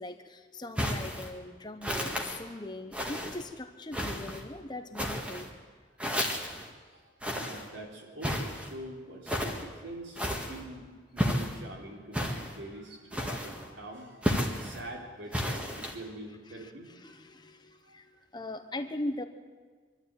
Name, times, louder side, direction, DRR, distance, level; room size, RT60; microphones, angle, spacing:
voice 1, 0.0-5.5 16.5-19.2, left 1 dB, 25° left, 8 dB, 1.0 m, -40 dB
sound 1, 0.8-1.3 1.8-2.4 2.9-3.4 3.9-4.4 4.9-5.5 6.0-6.7 7.2-7.7 8.2-8.7 9.3-9.6 10.2-10.6 11.2-11.6 12.1-12.6 13.1-13.7 14.2-14.8 15.3-16.0, equal, 5° right, 1.8 m, -32 dB
voice 2, 6.9-17.2 17.8-18.3, right 1 dB, 75° right, 0 dB, 3.9 m, -45 dB
24.0 x 12.0 x 9.1 m, 1.5 s
head